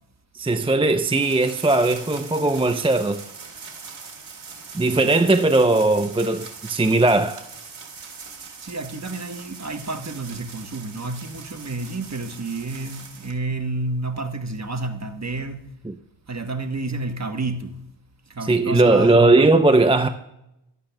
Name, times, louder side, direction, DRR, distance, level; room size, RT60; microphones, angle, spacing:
voice 1, 0.3-3.2 4.7-7.4 15.9-16.0 18.5-20.1, right 2 dB, 10° right, 0.5 m, -18 dB
sound 1, 1.0-13.4, right 5 dB, 85° right, 1.7 m, -41 dB
voice 2, 8.6-15.7 16.3-17.8 18.3-19.3, right 3 dB, 35° right, 1.1 m, -30 dB
15.0 x 11.5 x 2.2 m
cardioid pair, 50°, 46 cm